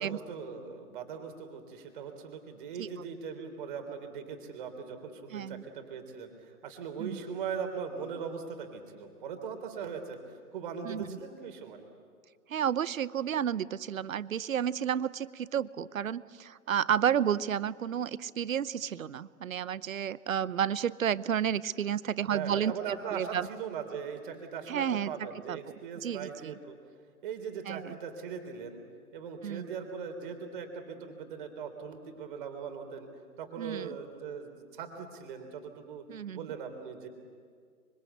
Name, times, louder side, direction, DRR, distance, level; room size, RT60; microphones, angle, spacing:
voice 1, 0.0-11.9 22.3-26.8 27.2-28.8 29.1-33.1 33.4-36.0 36.3-37.1, right 6 dB, 35° right, 5 dB, 3.3 m, -40 dB
voice 2, 5.3-5.6 7.0-7.2 10.8-11.0 12.5-23.5 24.7-25.1 25.5-25.6 26.0-26.6 27.7-28.0 29.4-29.7 33.6-34.0 36.1-36.5, right 9 dB, 60° right, 18 dB, 0.8 m, -31 dB
25.5 x 25.0 x 8.2 m, 2.1 s
hypercardioid pair, 160°, 45 cm